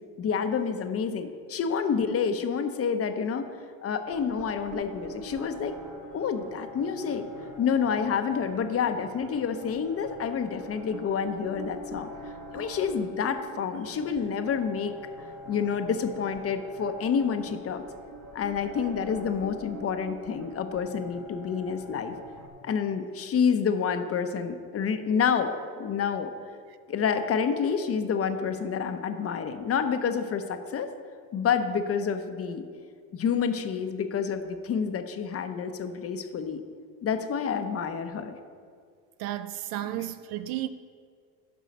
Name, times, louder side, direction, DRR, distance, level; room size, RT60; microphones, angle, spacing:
voice 1, 0.2-3.5 3.8-5.8 6.1-7.3 7.6-12.1 12.5-15.0 15.5-17.8 18.3-22.1 22.6-26.3 26.9-30.9 31.3-32.6 33.1-36.6 37.0-38.3 39.9-40.0, left 6 dB, 30° left, 0.7 m, -28 dB
sound 1, 4.0-22.5, right 1 dB, 35° right, 1.2 m, -44 dB
voice 2, 39.2-40.7, right 13 dB, 50° right, 0.5 m, -33 dB
9.2 x 5.5 x 5.2 m
supercardioid pair, 105°, 46 cm